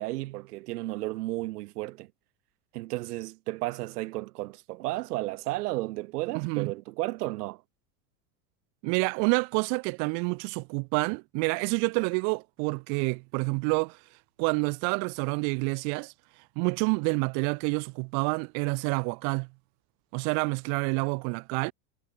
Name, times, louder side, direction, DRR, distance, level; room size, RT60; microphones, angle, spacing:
voice 1, 0.0-2.1 2.7-7.6, right 19 dB, 85° right, 1.3 m, -33 dB
voice 2, 6.3-6.7 8.8-14.0 14.4-16.1 16.6-19.5 20.1-21.7, right 40 dB or more, 40° right, 0.6 m, -28 dB
supercardioid pair, 155°, 45 cm